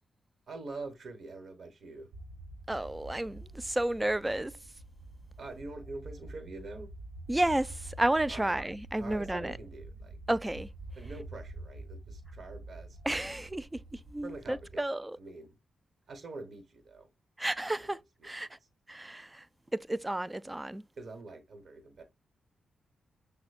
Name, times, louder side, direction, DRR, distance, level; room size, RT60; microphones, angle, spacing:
voice 1, 0.5-2.1 5.4-6.9 8.3-8.5 9.0-10.2 10.9-13.3 14.2-14.8 15.2-15.6 16.1-17.1 17.8-17.9 18.2-18.3 21.0-22.0, right 3 dB, 55° right, 1.2 m, -45 dB
sound 1, 2.1-14.8, right 2 dB, 85° right, 1.0 m, -47 dB
voice 2, 2.7-4.5 7.3-9.5 10.3-10.7 13.0-15.2 17.4-18.0 18.2-18.5 18.9-19.4 19.7-20.8, right 1 dB, 15° right, 0.3 m, -31 dB
6.1 x 2.1 x 2.4 m
cardioid pair, 60°, 0 cm